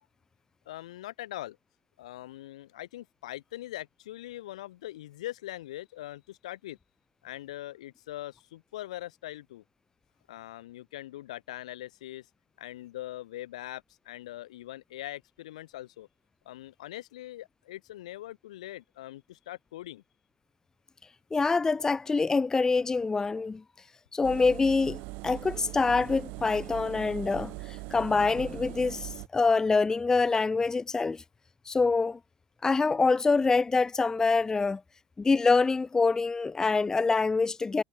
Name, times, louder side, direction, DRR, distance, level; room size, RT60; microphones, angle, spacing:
voice 1, 0.7-1.6 2.0-6.8 7.2-9.6 10.3-12.3 12.6-16.1 16.5-20.0, left 15 dB, 70° left, 2.0 m, -42 dB
voice 2, 21.3-23.6 24.1-31.2 31.7-32.2 32.6-34.8 35.2-37.8, left 4 dB, 15° left, 0.6 m, -25 dB
Engine, 24.2-29.3, right 28 dB, 60° right, 4.7 m, -40 dB
hypercardioid pair, 75°, 4 cm